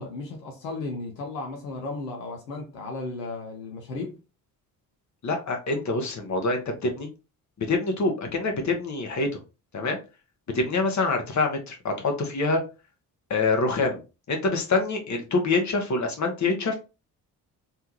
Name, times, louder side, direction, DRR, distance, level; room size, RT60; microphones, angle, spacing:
voice 1, 0.0-4.2, left 3 dB, 85° left, 0.7 m, -35 dB
voice 2, 5.2-7.1 7.6-9.4 9.7-10.0 10.5-12.6 13.3-14.0 14.3-16.8, left 3 dB, 35° left, 1.1 m, -25 dB
3.4 x 2.4 x 3.0 m
figure-of-eight pair, 40°, 48 cm